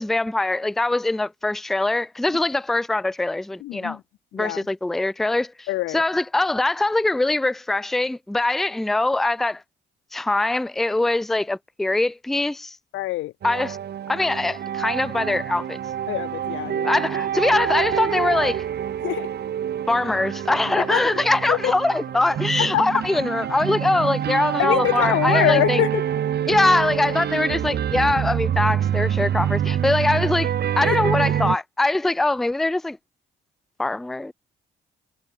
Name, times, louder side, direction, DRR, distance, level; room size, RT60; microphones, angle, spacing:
voice 1, 0.0-4.0 4.3-5.7 5.9-9.6 10.1-12.8 13.4-13.8 14.1-15.8 16.8-18.6 19.9-25.8 26.5-33.0 33.8-34.3, left 2 dB, ahead, 0.3 m, -22 dB
voice 2, 3.6-4.0 4.3-4.7 5.7-6.0 12.9-13.3 16.1-17.0 19.0-19.3 20.9-21.0 21.5-21.7 22.7-22.8 24.6-26.0, left 17 dB, 80° left, 0.4 m, -24 dB
sound 1, 13.4-31.6, right 10 dB, 55° right, 1.1 m, -26 dB
cardioid pair, 90°, 20 cm